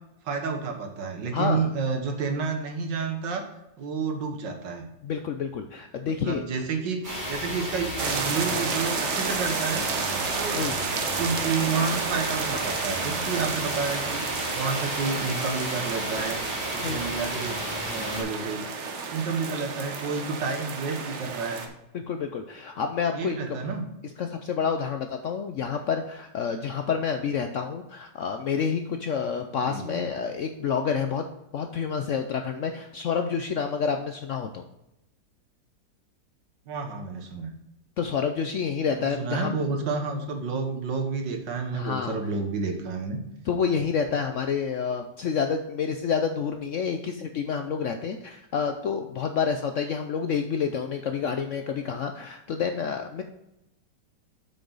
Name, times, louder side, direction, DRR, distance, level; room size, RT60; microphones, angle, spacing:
voice 1, 0.2-3.4 3.8-4.8 6.0-7.0 7.3-9.9 10.4-10.7 11.2-14.2 14.5-16.4 16.7-18.6 19.1-21.6 23.1-23.9 29.7-30.0 36.7-37.5 38.9-43.2, right 4 dB, 80° right, 4 dB, 1.9 m, -30 dB
voice 2, 1.3-1.7 5.0-6.4 10.5-10.8 16.8-17.0 21.9-23.6 24.0-31.3 31.5-34.6 38.0-39.6 41.7-42.2 43.5-53.2, left 6 dB, 75° left, 6 dB, 0.7 m, -28 dB
sound 1, 7.0-18.2, equal, 25° right, 3.3 m, -34 dB
sound 2, 8.0-21.7, right 5 dB, 50° right, 1.1 m, -31 dB
8.3 x 6.1 x 4.0 m, 0.88 s
omnidirectional pair, 1.9 m